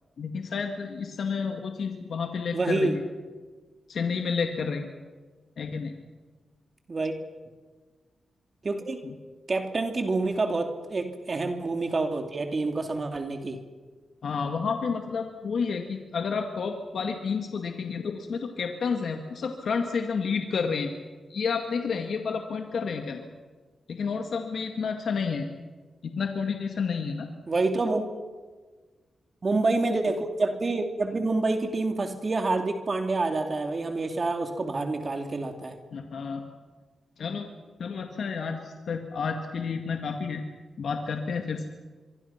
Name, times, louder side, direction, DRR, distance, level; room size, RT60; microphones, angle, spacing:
voice 1, 0.2-3.0 3.9-4.9 5.6-5.9 9.0-9.1 14.2-20.9 21.3-23.3 23.9-25.5 26.0-27.3 35.9-36.4 37.2-37.5 37.8-40.4 40.8-41.7, left 5 dB, 75° left, 4 dB, 2.0 m, -30 dB
voice 2, 2.5-2.9 6.9-7.1 8.6-9.0 9.5-13.6 27.5-28.1 29.4-35.7, right 3 dB, 45° right, 5 dB, 2.9 m, -27 dB
25.0 x 24.0 x 5.9 m, 1.4 s
cardioid pair, 50°, 0 cm